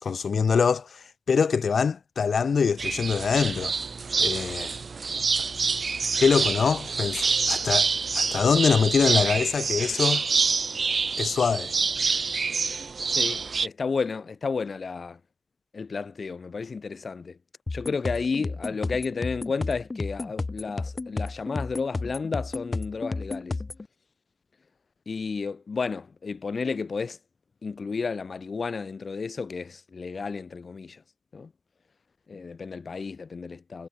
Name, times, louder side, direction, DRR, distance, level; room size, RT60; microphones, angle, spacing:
voice 1, 0.0-3.7 4.2-4.8 6.2-7.9 8.2-10.2 11.2-11.7, left 6 dB, 85° left, 2.0 m, -24 dB
sound 1, 2.8-13.7, right 5 dB, 65° right, 1.9 m, -27 dB
voice 2, 13.1-15.2 15.7-17.4 17.7-23.6 25.1-27.2 27.6-31.0 31.3-31.5 32.3-33.9, left 4 dB, 65° left, 0.9 m, -32 dB
sound 2, 17.7-23.9, left 3 dB, 40° left, 5.1 m, -32 dB
wide cardioid pair, 100°, 0 cm